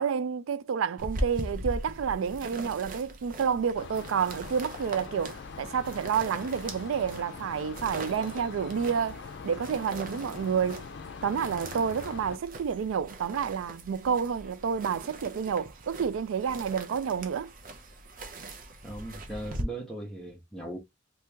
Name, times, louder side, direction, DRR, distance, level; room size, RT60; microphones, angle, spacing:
voice 1, 0.0-10.9 11.2-17.5, right 7 dB, 80° right, 0.4 m, -29 dB
sound 1, 1.0-19.6, right 1 dB, 45° right, 0.7 m, -41 dB
sound 2, 3.7-12.4, left 5 dB, 60° left, 0.5 m, -43 dB
voice 2, 18.8-20.8, right 1 dB, ahead, 0.7 m, -38 dB
2.9 x 2.7 x 3.3 m
head